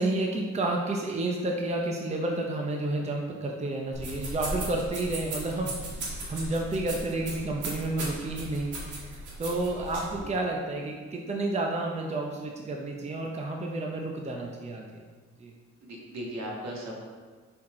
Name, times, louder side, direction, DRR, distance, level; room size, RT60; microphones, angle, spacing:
voice 1, 0.0-9.1 9.4-15.0 15.4-15.5, right 2 dB, 20° right, 0 dB, 0.6 m, -31 dB
sound 1, 3.9-10.2, right 2 dB, 85° right, 1.5 m, -37 dB
voice 2, 15.8-16.9, equal, 65° right, -2 dB, 1.7 m, -37 dB
5.7 x 4.5 x 3.7 m, 1.5 s
cardioid pair, 85°, 30 cm